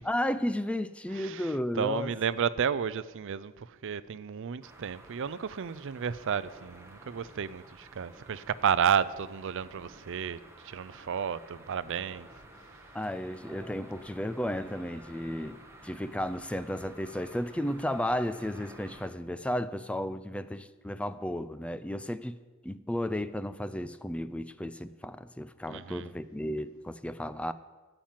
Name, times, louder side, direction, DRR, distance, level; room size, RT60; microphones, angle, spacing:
voice 1, 0.0-2.1 12.9-27.5, left 1 dB, 5° left, 0.4 m, -33 dB
voice 2, 1.1-12.3 25.7-26.1, right 7 dB, 60° right, 0.4 m, -32 dB
sound 1, 4.6-19.1, right 1 dB, 10° right, 1.3 m, -52 dB
11.5 x 8.9 x 7.5 m
head